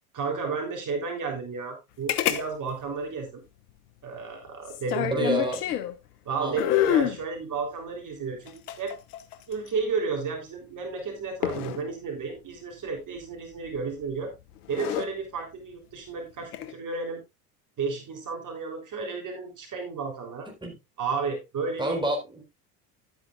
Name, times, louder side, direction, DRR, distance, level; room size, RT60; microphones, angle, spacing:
voice 1, 0.1-3.4 4.0-5.5 6.3-8.9 9.5-14.3 14.7-17.2 17.8-20.5 21.0-22.0, right 4 dB, 40° right, 3.7 m, -32 dB
sound 1, 2.1-2.4 2.7-2.8 4.7-6.0 6.6-7.2 8.5-9.7 11.4-11.8 13.7-14.0 14.6-15.1 16.4-16.7, left 11 dB, 80° left, 1.2 m, -27 dB
voice 2, 5.1-5.6 6.3-6.6 20.6-20.7 21.8-22.4, right 1 dB, 10° right, 4.1 m, -28 dB
12.0 x 9.3 x 2.5 m
hypercardioid pair, 80°, 46 cm